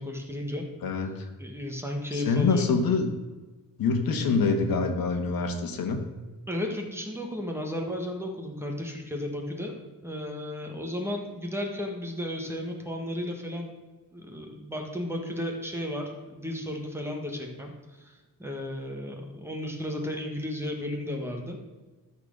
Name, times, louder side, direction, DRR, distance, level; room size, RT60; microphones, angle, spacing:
voice 1, 0.0-0.6 1.4-2.6 6.5-9.7 10.0-13.7 14.1-17.7 18.0-21.6, left 1 dB, 5° right, 1 dB, 1.4 m, -34 dB
voice 2, 0.8-1.3 2.1-3.1 3.8-6.0, left 4 dB, 80° left, 5 dB, 1.5 m, -25 dB
13.0 x 4.4 x 6.6 m, 1.3 s
wide cardioid pair, 155°, 35 cm